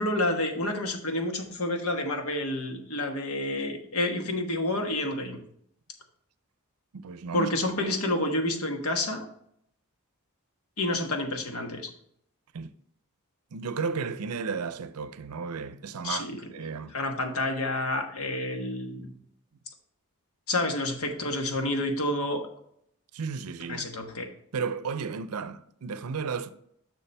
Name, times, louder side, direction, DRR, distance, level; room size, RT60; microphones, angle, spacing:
voice 1, 0.0-5.4 7.3-9.3 10.8-11.9 16.0-16.4 16.9-19.1 20.5-22.4 23.7-24.3, left 1 dB, 75° left, 1.3 m, -29 dB
voice 2, 6.9-7.5 12.5-12.7 13.5-17.0 23.1-23.9 24.5-26.5, right 5 dB, 85° right, 0.5 m, -33 dB
6.9 x 6.3 x 3.4 m
head